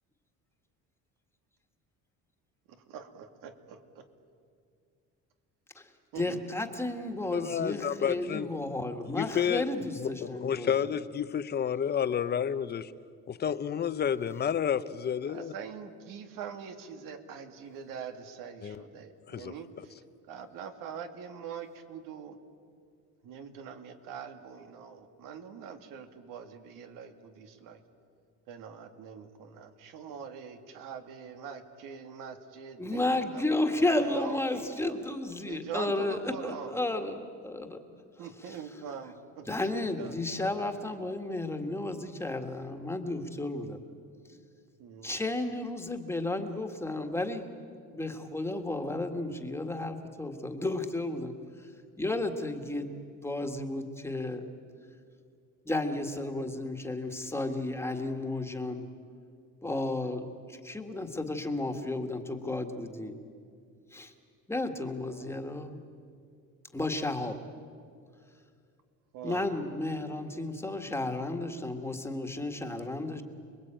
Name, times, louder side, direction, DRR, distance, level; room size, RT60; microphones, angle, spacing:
voice 1, 2.9-4.0 6.1-6.4 15.3-19.9 20.3-22.4 23.2-27.8 28.5-33.4 33.9-35.0 35.5-36.8 38.2-40.6 44.8-45.1 65.1-65.4 69.1-69.5, right 7 dB, 85° right, 6 dB, 2.4 m, -43 dB
voice 2, 6.2-10.7 32.8-37.2 37.4-37.8 38.5-38.6 39.5-43.8 45.0-47.5 47.9-51.3 51.6-51.7 52.0-52.9 53.2-54.5 55.7-58.8 59.6-63.1 63.9-64.1 64.5-65.8 66.7-67.4 69.2-73.2, left 2 dB, 10° left, 5 dB, 1.7 m, -33 dB
voice 3, 7.3-8.5 9.1-9.7 10.0-12.9 13.3-15.5 18.6-18.8 19.3-19.5, left 8 dB, 30° left, 13 dB, 0.8 m, -30 dB
29.0 x 21.0 x 9.0 m, 2.3 s
cardioid pair, 150°, 32 cm